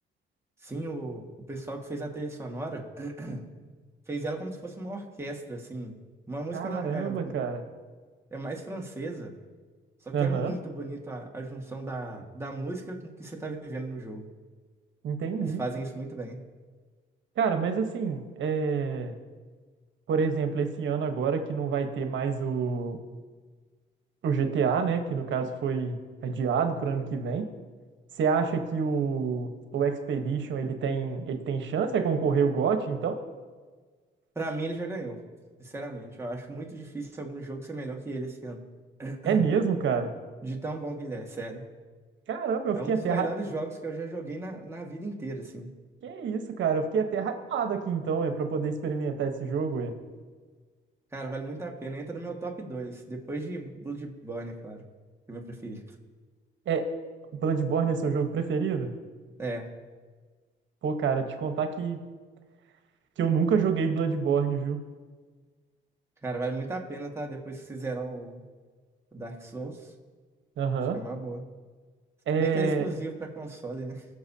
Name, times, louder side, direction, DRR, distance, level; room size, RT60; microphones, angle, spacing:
voice 1, 0.6-3.4 4.1-6.0 6.3-7.3 8.3-9.3 10.0-14.3 15.4-16.4 34.4-35.2 35.6-38.6 39.0-39.4 40.4-41.6 42.8-45.7 51.1-54.8 55.3-55.8 59.4-59.7 66.2-68.4 69.1-69.9 70.9-71.4 72.4-74.1, right 2 dB, 15° right, -1 dB, 1.9 m, -36 dB
voice 2, 6.5-7.6 10.1-10.5 15.0-15.6 17.4-19.1 20.1-23.0 24.2-25.9 26.2-27.5 28.2-33.2 39.2-40.1 42.3-43.3 46.0-49.9 56.7-56.8 57.4-58.9 60.8-62.0 63.2-64.8 70.6-71.0 72.3-72.9, right 6 dB, 70° right, 6 dB, 1.2 m, -27 dB
20.5 x 7.0 x 2.8 m, 1.5 s
cardioid pair, 90°, 20 cm